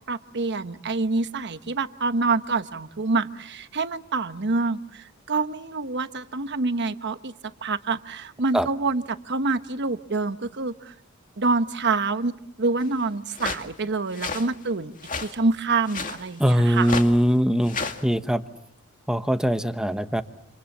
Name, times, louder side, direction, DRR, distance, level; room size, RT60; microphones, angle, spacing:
voice 1, 0.1-7.3 7.6-10.9 11.4-12.3 12.6-14.9 15.2-16.9, right 3 dB, 55° right, 11 dB, 1.1 m, -26 dB
sound 1, 13.3-13.6 14.1-14.5 15.0-15.3 15.9-16.2 16.8-17.1 17.6-18.0, left 4 dB, 35° left, 2.2 m, -31 dB
voice 2, 16.4-17.8 18.0-18.4 19.1-20.2, equal, 5° right, 9 dB, 1.1 m, -21 dB
28.5 x 28.0 x 7.2 m, 0.74 s
head